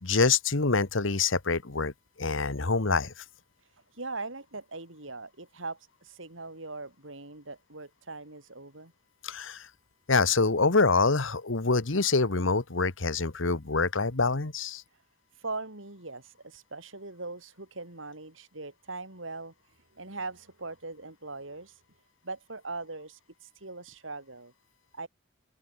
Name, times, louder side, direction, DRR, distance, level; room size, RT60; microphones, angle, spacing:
voice 1, 0.0-1.9 2.2-3.2 9.2-9.7 10.1-14.8, left 4 dB, 70° left, 1.4 m, -26 dB
voice 2, 3.6-8.9 14.9-15.0 15.3-21.8 22.2-24.5 24.9-25.1, right 3 dB, 70° right, 4.9 m, -41 dB
open air
head